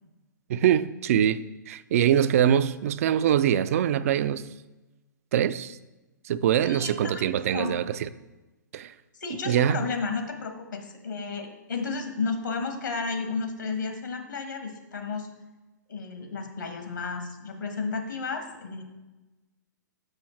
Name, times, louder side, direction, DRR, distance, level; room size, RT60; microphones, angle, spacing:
voice 1, 0.5-1.4 1.7-4.4 5.3-5.8 6.3-8.1 8.7-8.9 9.5-9.8, right 10 dB, 45° right, 0.4 m, -23 dB
voice 2, 6.6-7.2 7.5-7.7 9.2-15.3 15.9-18.8, left 4 dB, 75° left, 1.4 m, -32 dB
6.5 x 5.5 x 4.3 m
figure-of-eight pair, 115°, 10 cm